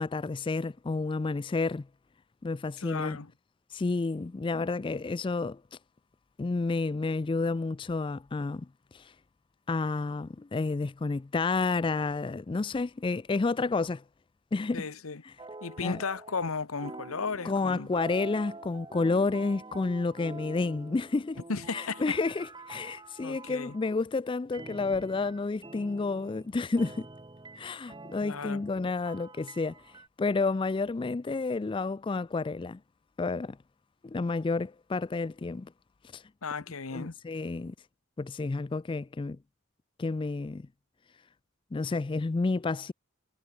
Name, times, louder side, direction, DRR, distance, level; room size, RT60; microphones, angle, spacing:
voice 1, 0.0-1.9 2.4-3.2 3.7-5.6 6.4-8.7 8.9-9.1 9.7-14.0 14.5-14.9 15.2-15.3 15.8-16.0 17.4-21.4 21.7-27.1 27.6-32.8 33.2-33.6 34.0-35.7 36.1-36.2 36.9-37.7 38.2-39.4 40.0-40.7 41.7-42.9, left 3 dB, 25° left, 0.3 m, -30 dB
voice 2, 2.8-3.3 14.7-15.2 15.6-17.9 21.5-22.2 23.2-23.7 28.2-28.6 36.4-37.1, left 4 dB, 90° left, 1.1 m, -35 dB
sound 1, 15.4-16.5 16.8-24.0 24.5-30.1, right 3 dB, 20° right, 1.0 m, -46 dB
head